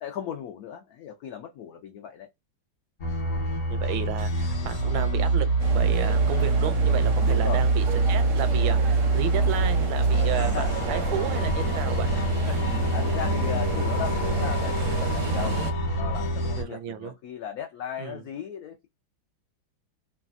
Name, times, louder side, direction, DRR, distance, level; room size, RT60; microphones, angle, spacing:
voice 1, 0.0-2.3 7.1-7.6 10.4-10.7 12.1-15.6 16.0-18.9, left 9 dB, 85° left, 0.8 m, -37 dB
sound 1, 3.0-16.6, right 2 dB, 55° left, 1.4 m, -24 dB
voice 2, 3.7-5.5 5.7-12.1 16.6-17.1 18.0-18.2, right 10 dB, 85° right, 1.3 m, -33 dB
sound 2, 5.6-15.7, right 5 dB, 65° right, 0.8 m, -34 dB
3.3 x 2.2 x 2.4 m
omnidirectional pair, 2.1 m